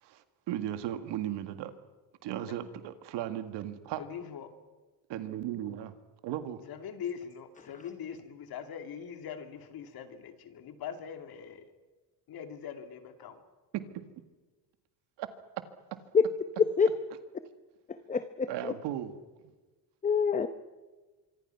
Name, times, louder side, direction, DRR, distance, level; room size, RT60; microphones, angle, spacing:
voice 1, 0.0-1.7 2.2-4.0 5.1-6.0 6.2-6.6 13.7-14.0 15.2-15.3 15.9-16.0 18.5-19.1, right 12 dB, 70° right, 9 dB, 2.0 m, -36 dB
voice 2, 4.0-4.5 6.7-11.7 12.3-13.4, left 8 dB, 55° left, 7 dB, 2.7 m, -42 dB
voice 3, 16.6-16.9 17.9-18.7 20.0-20.5, left 6 dB, 15° left, 10 dB, 0.9 m, -26 dB
25.5 x 24.0 x 5.9 m, 1.3 s
cardioid pair, 115°, 43 cm